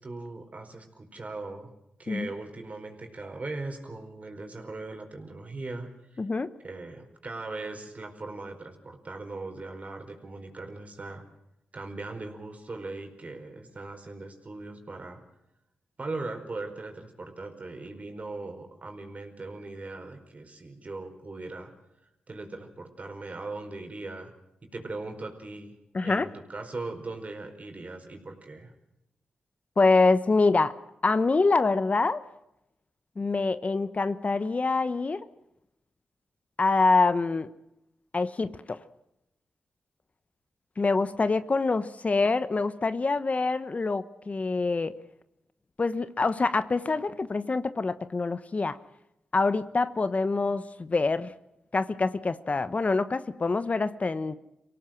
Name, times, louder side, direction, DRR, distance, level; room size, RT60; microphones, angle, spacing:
voice 1, 0.0-1.7 2.0-6.2 6.6-11.2 11.7-15.2 16.0-21.7 22.3-24.3 24.6-25.7 26.0-28.7, right 3 dB, 45° right, 5 dB, 4.8 m, -39 dB
voice 2, 6.2-6.5 25.9-26.3 29.8-30.7 31.0-32.2 33.2-35.3 36.6-37.5 38.1-38.8 40.8-45.0 45.8-48.8 49.3-51.3 51.7-54.4, left 3 dB, 45° left, 13 dB, 1.1 m, -25 dB
25.5 x 17.5 x 7.6 m, 0.87 s
cardioid pair, 45°, 3 cm